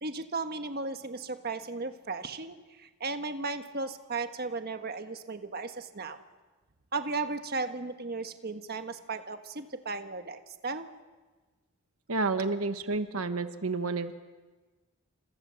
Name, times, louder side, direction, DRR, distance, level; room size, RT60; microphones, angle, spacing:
voice 1, 0.0-6.2 6.9-10.9, right 3 dB, 45° right, 7 dB, 1.4 m, -35 dB
voice 2, 12.1-14.2, right 3 dB, 75° right, 9 dB, 1.3 m, -30 dB
29.5 x 26.5 x 7.0 m, 1.3 s
head